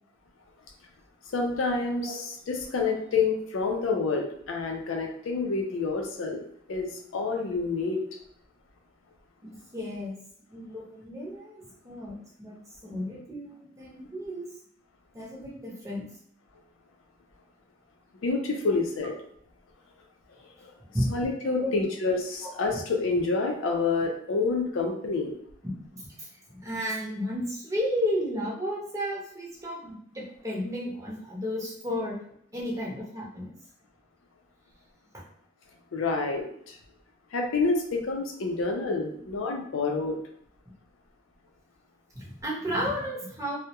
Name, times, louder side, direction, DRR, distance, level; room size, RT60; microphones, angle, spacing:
voice 1, 1.3-6.4 6.7-8.0 18.2-19.1 21.1-25.3 35.9-36.8 37.3-40.2, left 3 dB, 85° left, 2 dB, 0.4 m, -28 dB
voice 2, 9.4-10.2 10.5-14.5 15.1-16.1 20.9-21.1 21.5-21.7 25.6-32.2 32.5-33.5 35.1-35.2 42.1-43.6, equal, 15° right, -5 dB, 0.6 m, -33 dB
2.2 x 2.0 x 2.8 m, 0.69 s
head